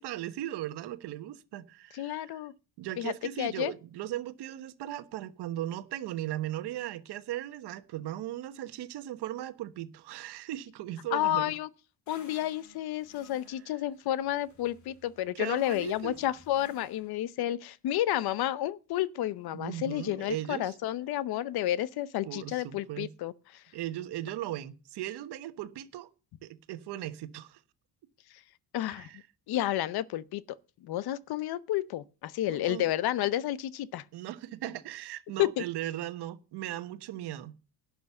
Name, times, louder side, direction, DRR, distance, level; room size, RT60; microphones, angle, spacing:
voice 1, 0.0-2.4 2.8-11.5 15.3-16.1 19.5-20.7 22.2-23.1 23.7-26.1 26.4-27.6 28.9-29.2 32.5-32.8 34.1-37.5, right 13 dB, 75° right, 1.3 m, -38 dB
voice 2, 1.9-2.5 3.0-3.1 3.4-3.7 11.1-11.7 12.1-23.6 28.7-29.1 29.5-34.0 35.4-35.6, left 13 dB, 65° left, 0.8 m, -31 dB
sound 1, 12.1-17.2, left 3 dB, 45° left, 2.7 m, -56 dB
11.5 x 6.2 x 7.1 m
cardioid pair, 175°, 41 cm